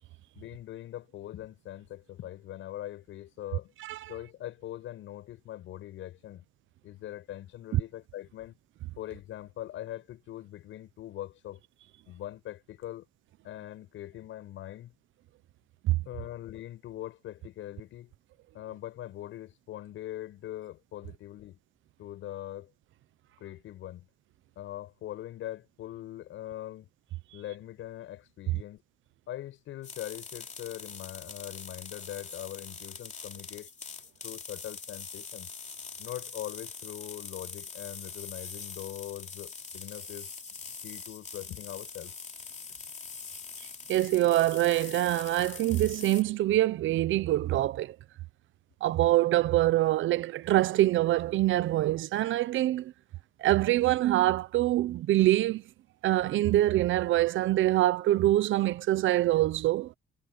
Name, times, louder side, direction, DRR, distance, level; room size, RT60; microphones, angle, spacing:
voice 1, 0.3-3.7 4.1-6.4 6.8-8.5 9.0-11.6 12.1-13.1 13.4-14.9 16.0-18.1 18.5-21.6 22.0-22.7 23.4-24.1 24.6-26.9 27.3-28.8 29.3-33.7 34.2-35.5 36.0-40.3 40.8-42.1, left 13 dB, 85° left, 6.5 m, -42 dB
sound 1, 29.8-46.2, left 5 dB, 35° left, 3.3 m, -43 dB
voice 2, 43.9-47.9 48.8-52.9 53.4-55.6 56.0-59.9, right 15 dB, 80° right, 0.8 m, -25 dB
cardioid pair, 90°, 20 cm